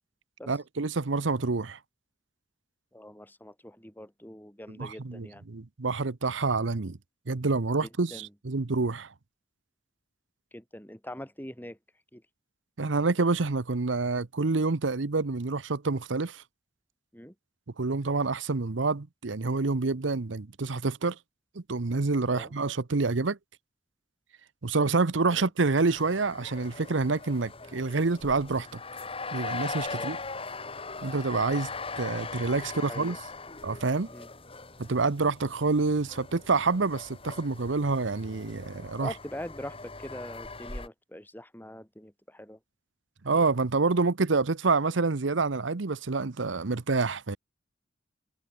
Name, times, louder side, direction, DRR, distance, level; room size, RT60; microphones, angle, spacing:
voice 1, 0.5-1.8 4.8-7.0 7.3-9.1 12.8-16.4 17.8-21.2 21.5-23.4 24.6-28.8 29.3-30.2 31.0-33.2 33.6-34.1 34.8-39.1 43.2-47.4, right 3 dB, 80° right, 0.9 m, -27 dB
voice 2, 2.9-5.4 7.8-8.3 10.5-11.8 12.1-12.2 17.1-17.3 22.3-22.5 25.3-25.5 29.9-30.1 32.7-33.2 34.1-34.3 39.0-42.6, left 1 dB, 10° left, 5.4 m, -43 dB
sound 1, 25.7-40.9, left 3 dB, 30° left, 4.5 m, -40 dB
head